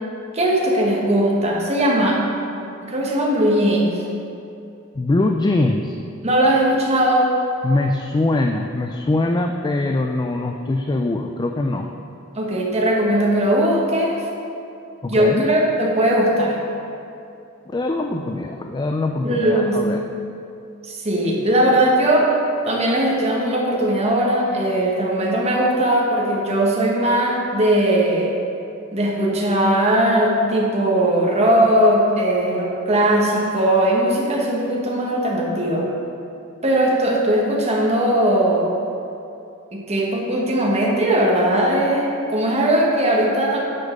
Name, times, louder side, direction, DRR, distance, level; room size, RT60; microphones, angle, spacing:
voice 1, 0.3-2.2 2.8-4.0 6.2-7.3 12.3-14.2 15.1-16.6 19.2-19.8 20.8-22.3 22.6-28.3 28.9-35.9 36.6-38.7 39.7-43.6, right 1 dB, 30° right, -3 dB, 1.4 m, -19 dB
voice 2, 5.0-6.0 7.6-11.9 15.0-15.4 17.7-20.0, left 2 dB, 20° left, 4 dB, 0.3 m, -22 dB
9.4 x 5.4 x 5.2 m, 2.7 s
head